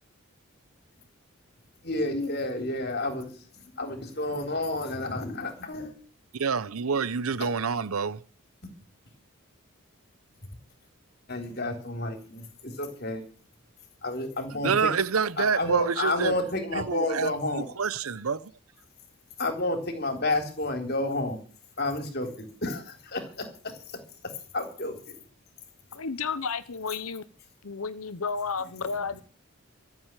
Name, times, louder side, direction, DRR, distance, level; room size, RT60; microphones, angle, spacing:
voice 1, 1.8-3.3 3.8-5.9 11.3-13.2 14.0-14.9 15.4-17.7 19.4-21.4 21.8-23.5 24.5-25.2, left 2 dB, 45° left, 3.7 m, -30 dB
voice 2, 6.3-8.2 14.6-16.4 16.7-18.5, right 5 dB, 85° right, 0.8 m, -27 dB
voice 3, 25.9-27.2 27.6-29.2, left 5 dB, 85° left, 0.9 m, -32 dB
14.5 x 7.9 x 9.1 m
head